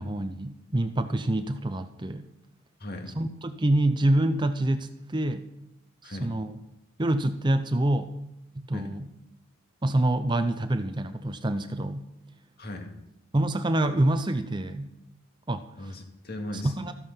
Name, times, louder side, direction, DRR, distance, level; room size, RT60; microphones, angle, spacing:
voice 1, 0.0-2.3 3.1-5.5 6.0-6.6 7.0-8.1 8.6-9.1 9.8-12.1 13.3-14.9 15.5-15.7 16.5-16.9, right 1 dB, 20° right, 9 dB, 0.6 m, -26 dB
voice 2, 2.8-3.1 6.0-6.3 8.7-8.9 12.6-12.9 15.8-16.9, left 1 dB, 50° left, 3 dB, 2.3 m, -38 dB
13.5 x 13.0 x 5.6 m, 0.88 s
head